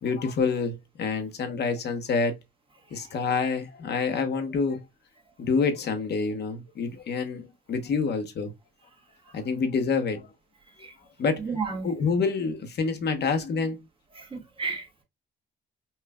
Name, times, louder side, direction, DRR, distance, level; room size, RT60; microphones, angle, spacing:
voice 1, 0.0-2.4 2.9-4.8 5.4-8.5 9.3-10.3 11.2-11.4 11.8-13.8, left 5 dB, 55° left, 0.9 m, -27 dB
voice 2, 11.4-11.9 14.1-15.0, right 4 dB, 25° right, 1.3 m, -33 dB
5.5 x 2.4 x 2.2 m
cardioid pair, 90°, 20 cm